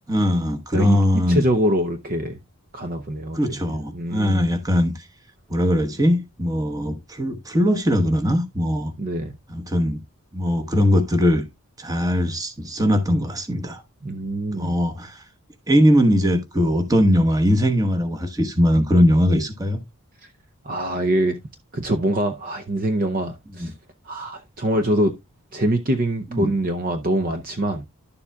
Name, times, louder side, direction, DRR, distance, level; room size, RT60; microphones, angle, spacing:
voice 1, 0.1-1.4 3.3-5.1 5.5-8.9 9.5-10.0 10.3-11.4 11.8-13.8 14.5-15.2 15.7-19.8 23.6-23.7 26.3-26.5, equal, 15° right, 1.1 m, -20 dB
voice 2, 1.3-2.4 2.7-3.6 3.9-4.4 9.0-9.4 14.0-14.8 20.6-21.4 21.7-23.7 24.1-25.1 25.5-27.9, right 1 dB, 40° right, 0.6 m, -24 dB
11.0 x 7.0 x 2.3 m
head